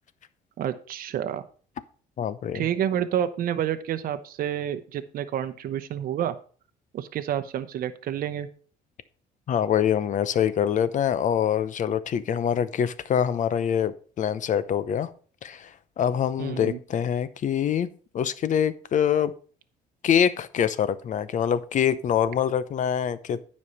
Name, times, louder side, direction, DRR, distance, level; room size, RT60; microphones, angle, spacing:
voice 1, 0.6-1.4 2.5-6.4 6.9-8.5 16.4-16.8, right 10 dB, 60° right, 9 dB, 0.8 m, -29 dB
voice 2, 2.2-2.7 9.5-15.1 15.4-17.9 18.1-19.3 20.0-23.4, left 9 dB, 45° left, 16 dB, 0.7 m, -25 dB
9.6 x 5.4 x 5.5 m, 0.42 s
cardioid pair, 110°, 17 cm